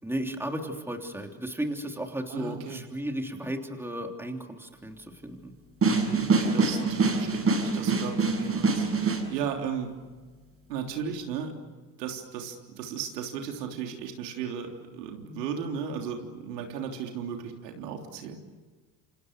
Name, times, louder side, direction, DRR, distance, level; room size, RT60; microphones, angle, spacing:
voice 1, 0.0-5.5, right 1 dB, 5° right, 3 dB, 3.3 m, -34 dB
voice 2, 2.3-2.8 5.9-10.0 10.7-11.5 12.0-18.4, right 7 dB, 85° right, 3 dB, 3.5 m, -35 dB
sound 1, 5.8-9.2, right 4 dB, 30° right, 6.8 m, -25 dB
28.5 x 27.0 x 6.7 m, 1.4 s
hypercardioid pair, 85°, 47 cm